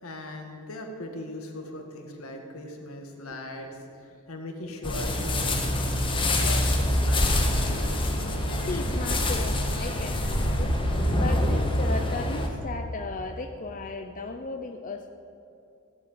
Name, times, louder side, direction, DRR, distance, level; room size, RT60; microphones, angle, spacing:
voice 1, 0.0-5.6 6.1-7.5, left 1 dB, 80° left, 3 dB, 2.0 m, -39 dB
sound 1, 4.8-12.5, left 1 dB, 25° left, 1.8 m, -25 dB
voice 2, 8.6-10.8 11.1-15.1, left 3 dB, 40° left, 4 dB, 0.7 m, -35 dB
16.0 x 7.2 x 9.1 m, 2.6 s
head